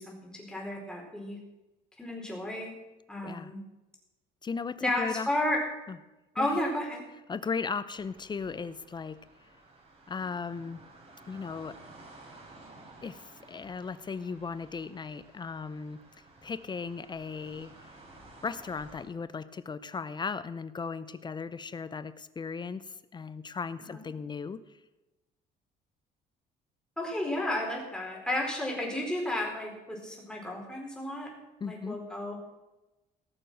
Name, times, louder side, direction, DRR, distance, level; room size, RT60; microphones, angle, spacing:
voice 1, 0.0-1.4 2.0-2.7 3.1-3.6 4.8-5.6 6.3-7.0 23.9-24.1 27.0-31.3 31.6-32.4, left 1 dB, 5° left, -1 dB, 4.3 m, -32 dB
voice 2, 4.4-5.3 5.9-6.0 6.4-6.6 7.3-9.2 10.1-10.8 11.3-11.8 13.0-16.0 16.4-18.0 18.4-24.6 31.6-32.0, left 5 dB, 25° left, 15 dB, 0.6 m, -37 dB
sound 1, 7.9-19.0, right 2 dB, 40° right, 4.0 m, -54 dB
17.5 x 6.9 x 6.4 m, 1.0 s
cardioid pair, 110°, 17 cm